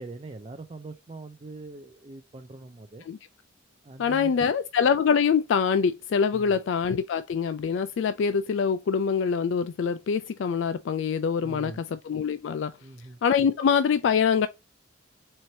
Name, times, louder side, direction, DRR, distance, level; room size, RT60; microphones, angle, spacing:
voice 1, 0.0-3.1 3.8-4.5 6.3-6.5 11.4-11.8 12.8-13.2, right 3 dB, 30° right, 0.4 m, -42 dB
voice 2, 4.0-12.7 13.2-14.5, left 6 dB, 65° left, 0.3 m, -24 dB
4.3 x 3.1 x 2.7 m
head